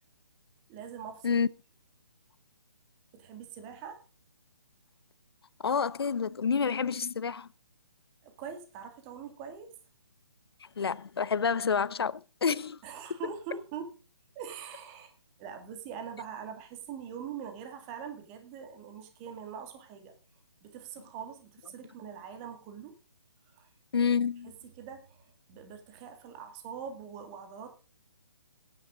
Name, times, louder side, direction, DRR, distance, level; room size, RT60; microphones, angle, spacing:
voice 1, 0.7-1.4 3.1-4.0 8.2-9.8 12.8-13.9 14.4-15.1 15.4-20.1 20.6-23.0 23.5-23.7 24.4-27.7, right 7 dB, 25° right, 2.2 m, -43 dB
voice 2, 5.6-7.5 10.8-12.8 23.9-24.5, left 6 dB, 65° left, 0.7 m, -28 dB
15.5 x 10.5 x 3.8 m
figure-of-eight pair, 140°, 14 cm